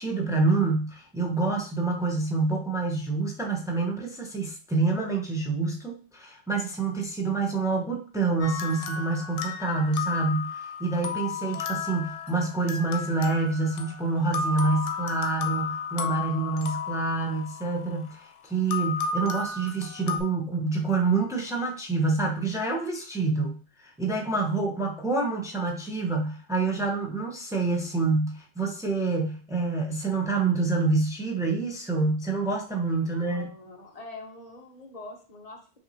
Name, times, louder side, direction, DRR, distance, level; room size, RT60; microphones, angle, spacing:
voice 1, 0.0-33.5, right 3 dB, 5° right, 1 dB, 0.5 m, -27 dB
sound 1, 8.4-18.1 18.7-20.2, left 5 dB, 80° left, 0.9 m, -33 dB
voice 2, 33.2-35.8, left 2 dB, 35° left, 2 dB, 0.9 m, -44 dB
5.6 x 2.7 x 2.7 m, 0.39 s
omnidirectional pair, 1.2 m